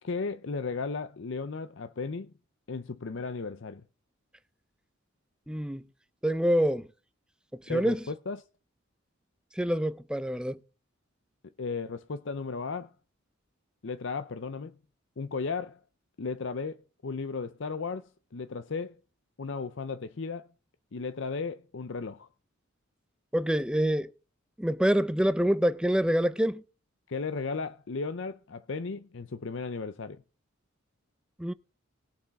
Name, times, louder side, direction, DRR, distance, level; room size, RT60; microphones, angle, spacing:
voice 1, 0.0-2.3 2.7-3.8 7.7-8.4 11.6-12.9 13.8-14.8 15.2-15.8 16.2-19.0 19.4-20.5 20.9-22.3 27.1-30.2, left 4 dB, 60° left, 0.6 m, -35 dB
voice 2, 5.5-5.8 6.2-6.9 7.5-8.0 9.6-10.6 23.3-24.1 24.6-26.6 31.4-31.5, equal, 5° right, 0.5 m, -26 dB
19.5 x 7.1 x 3.5 m
head